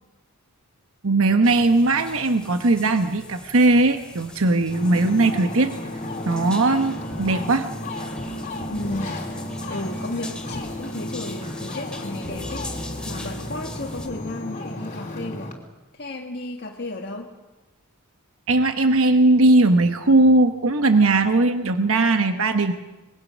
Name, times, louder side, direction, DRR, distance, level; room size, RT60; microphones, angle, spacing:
voice 1, 1.0-5.7 6.3-7.7 18.5-22.7, right 2 dB, 70° right, 7 dB, 1.1 m, -19 dB
sound 1, 1.4-14.1, left 2 dB, 5° left, 2.5 m, -42 dB
Ocean, 4.7-15.5, left 1 dB, 35° left, 3.2 m, -33 dB
sound 2, 6.7-14.2, left 1 dB, 25° right, 7.0 m, -41 dB
voice 2, 8.7-15.5 15.9-17.3, left 2 dB, 50° left, 1 dB, 1.8 m, -34 dB
26.0 x 22.0 x 6.4 m, 1.1 s
head